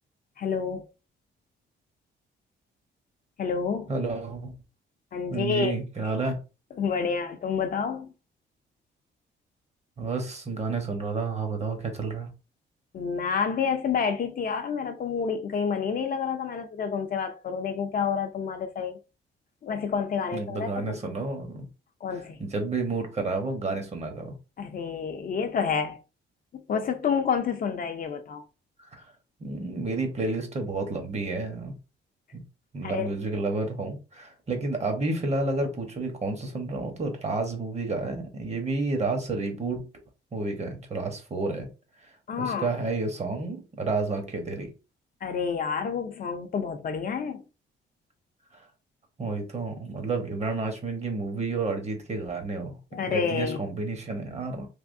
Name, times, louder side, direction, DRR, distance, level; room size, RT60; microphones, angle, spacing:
voice 1, 0.4-0.9 3.4-3.9 5.1-5.7 6.8-8.1 12.9-19.0 19.6-21.0 22.0-22.4 24.6-26.0 26.5-28.4 32.8-33.1 42.3-42.7 45.2-47.4 52.9-53.6, left 6 dB, 45° left, 0.5 m, -29 dB
voice 2, 3.9-4.5 5.3-6.4 10.0-12.3 20.3-21.7 22.4-24.3 29.0-29.1 29.4-31.7 32.3-32.4 32.7-39.8 40.3-41.7 42.4-44.7 49.2-52.8 53.0-54.7, right 3 dB, 35° right, 1.1 m, -30 dB
3.4 x 2.9 x 2.6 m
cardioid pair, 90°, 20 cm